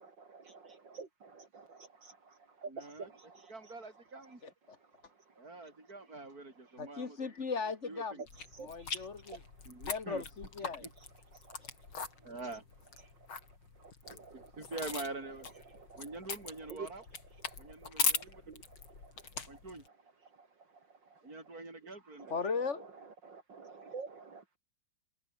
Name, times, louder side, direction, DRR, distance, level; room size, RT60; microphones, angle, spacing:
voice 1, 0.0-2.2 2.6-3.4 8.6-8.7 8.9-9.4 14.0-14.5 15.9-16.0 18.5-18.6 19.0-19.1 23.2-24.6, right 4 dB, 65° right, 3.1 m, -49 dB
voice 2, 2.7-4.4 5.4-7.3 7.8-8.2 9.6-10.2 10.6-10.9 12.2-12.7 14.1-15.5 16.0-17.0 17.6-18.5 19.5-19.8 21.2-22.4, right 2 dB, 45° right, 6.8 m, -45 dB
voice 3, 6.8-8.2 8.6-9.4 9.8-10.8 11.6-11.7 22.3-22.9, left 5 dB, 35° left, 2.0 m, -37 dB
sound 1, 8.3-19.9, left 5 dB, 85° left, 4.3 m, -40 dB
omnidirectional pair, 2.2 m